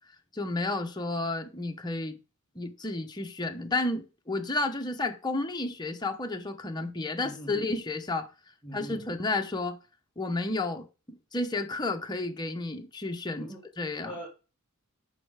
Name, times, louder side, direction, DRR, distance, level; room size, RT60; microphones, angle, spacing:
voice 1, 0.3-2.2 2.5-8.3 8.7-9.8 10.2-14.1, left 2 dB, 20° left, 1.0 m, -32 dB
voice 2, 7.1-7.6 8.6-9.1 13.4-13.6 14.0-14.3, equal, 5° right, 2.3 m, -41 dB
6.9 x 5.7 x 4.9 m
head